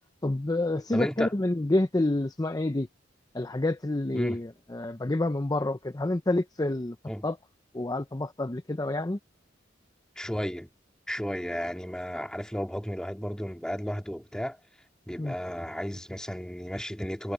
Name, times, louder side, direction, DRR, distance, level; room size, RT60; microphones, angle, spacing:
voice 1, 0.2-2.9 3.3-7.0 7.2-7.4 7.7-9.2 15.2-15.3, left 2 dB, 20° left, 0.6 m, -28 dB
voice 2, 0.9-1.3 4.1-4.4 7.1-7.2 10.2-10.7 11.1-14.6 15.1-17.3, equal, 5° left, 2.4 m, -33 dB
head